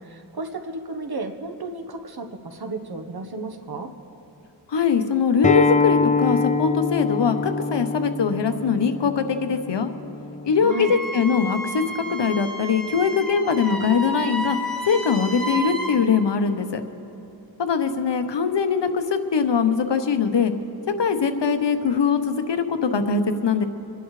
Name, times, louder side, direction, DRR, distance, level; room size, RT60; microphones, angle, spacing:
voice 1, 0.0-3.9 10.6-10.9, right 2 dB, 60° right, 5 dB, 1.2 m, -33 dB
voice 2, 4.7-9.9 10.4-11.8 12.1-14.6 14.8-16.8 17.6-20.5 21.0-23.7, left 6 dB, 80° left, 8 dB, 1.0 m, -22 dB
Acoustic guitar, 5.4-10.6, left 4 dB, 20° left, 0.4 m, -24 dB
Wind instrument woodwind instrument, 10.7-16.0, right 1 dB, ahead, 2.2 m, -31 dB
27.5 x 11.0 x 3.2 m, 2.8 s
wide cardioid pair, 70°, 42 cm